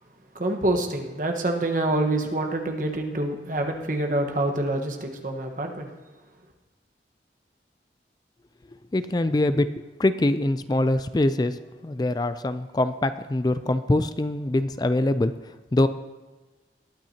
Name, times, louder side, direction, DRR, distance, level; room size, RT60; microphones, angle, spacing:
voice 1, 0.3-5.9, right 1 dB, 50° right, 4 dB, 1.4 m, -26 dB
voice 2, 8.9-9.7 10.0-15.9, left 1 dB, 20° left, 12 dB, 0.4 m, -24 dB
20.5 x 9.1 x 2.9 m, 1.2 s
head